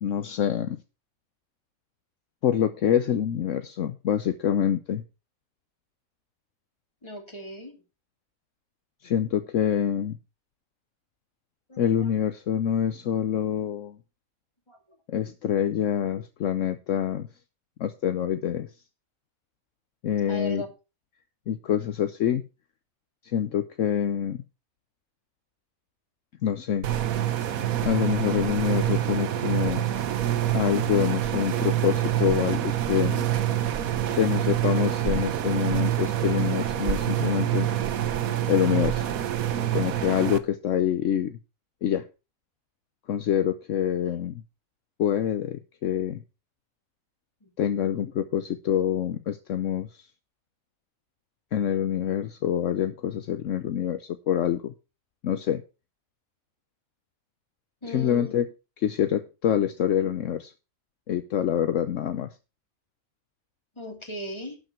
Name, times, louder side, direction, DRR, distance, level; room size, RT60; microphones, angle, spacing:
voice 1, 0.0-0.8 2.4-5.0 9.0-10.2 11.8-14.0 15.1-17.3 17.8-18.7 20.0-20.6 21.5-22.4 23.2-24.4 26.4-26.9 27.8-29.8 30.5-33.2 34.2-37.7 38.5-39.1 39.7-41.4 41.8-42.0 43.1-44.4 45.0-46.2 47.6-49.9 51.5-54.7 55.2-55.6 57.9-58.5 58.8-60.5 61.1-62.3, left 9 dB, 70° left, 10 dB, 1.1 m, -26 dB
voice 2, 7.0-7.8 11.7-12.2 14.7-14.8 20.3-20.7 47.4-47.5 57.8-58.3 63.7-64.6, left 1 dB, 20° left, 2 dB, 2.8 m, -38 dB
sound 1, 26.8-40.4, right 11 dB, 90° right, 1.4 m, -26 dB
12.0 x 7.8 x 4.4 m, 0.30 s
omnidirectional pair, 1.4 m